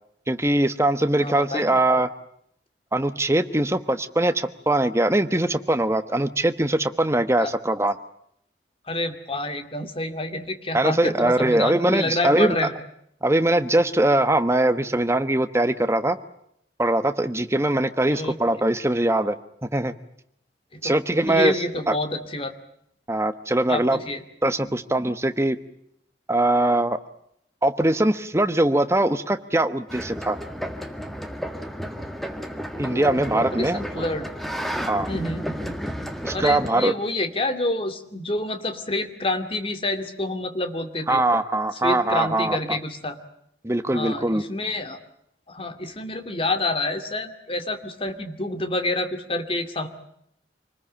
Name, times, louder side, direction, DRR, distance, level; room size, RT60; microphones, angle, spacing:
voice 1, 0.3-2.1 2.9-7.9 10.7-12.6 13.2-16.2 16.8-19.4 19.6-19.9 20.8-21.5 21.9-22.0 23.1-24.0 24.4-25.6 26.3-27.0 27.6-30.4 32.8-34.0 34.9-35.1 36.2-36.9 41.1-42.8 43.6-44.4, right 1 dB, 15° right, 11 dB, 1.1 m, -22 dB
voice 2, 1.2-1.8 7.4-7.5 8.9-12.7 18.0-18.4 20.7-22.5 23.7-24.2 24.6-24.7 32.9-34.3 35.1-35.5 36.3-41.2 41.8-43.2 43.9-45.0 45.5-49.9, left 2 dB, 30° left, 8 dB, 2.4 m, -28 dB
sound 1, 29.9-36.7, equal, ahead, 1.7 m, -32 dB
27.0 x 20.5 x 8.7 m, 0.73 s
head